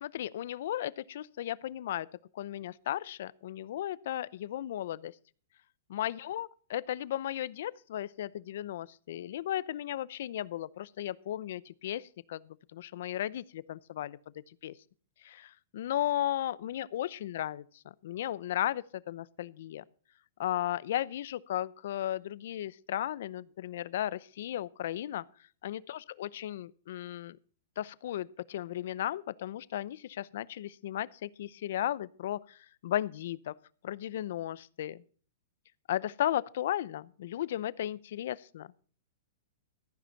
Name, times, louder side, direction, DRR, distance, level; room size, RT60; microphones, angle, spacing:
voice 1, 0.0-2.1 2.3-5.1 5.9-14.2 14.6-14.7 15.2-17.6 18.0-19.8 20.4-25.2 25.6-27.4 27.8-33.5 33.8-35.0 35.9-38.7, left 12 dB, 55° left, 0.7 m, -35 dB
14.0 x 10.0 x 4.1 m
hypercardioid pair, 170°, 0 cm